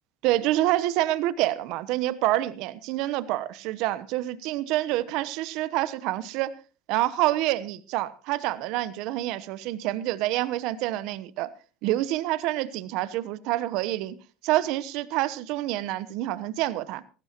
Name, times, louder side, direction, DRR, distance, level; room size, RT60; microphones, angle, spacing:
voice 1, 0.2-6.5 6.9-11.5 11.8-14.2 14.4-17.0, right 15 dB, 70° right, 1.0 m, -27 dB
19.5 x 15.0 x 3.0 m
hypercardioid pair, 75°, 0 cm